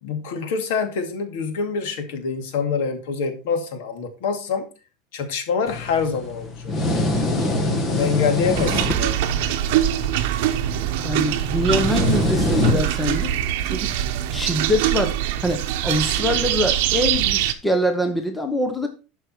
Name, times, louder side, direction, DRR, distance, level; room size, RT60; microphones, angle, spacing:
voice 1, 0.0-4.6 5.1-6.7 7.2-9.2, left 5 dB, 70° left, 7 dB, 2.3 m, -26 dB
sound 1, 5.7-13.2, left 1 dB, 20° left, 1.3 m, -25 dB
sound 2, 6.9-16.4, right 5 dB, 25° right, 2.7 m, -45 dB
sound 3, 8.5-17.5, right 12 dB, 60° right, 1.0 m, -23 dB
voice 2, 11.0-13.3 13.6-14.0 14.3-18.9, equal, 5° left, 6 dB, 0.9 m, -24 dB
12.0 x 5.4 x 4.5 m, 0.32 s
supercardioid pair, 180°, 0 cm